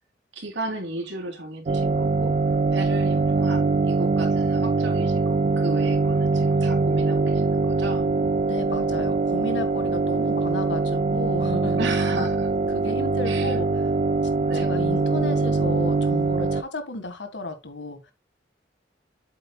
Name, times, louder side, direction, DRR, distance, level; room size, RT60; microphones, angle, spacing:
voice 1, 0.3-2.4 2.7-8.1 11.8-12.5 13.2-13.6 14.5-14.7, right 2 dB, 85° right, 3.2 m, -34 dB
sound 1, 1.7-16.6, right 3 dB, 40° right, 0.4 m, -23 dB
voice 2, 8.4-11.8 12.7-13.7 14.5-18.1, left 2 dB, 85° left, 1.9 m, -33 dB
8.1 x 8.0 x 2.3 m
head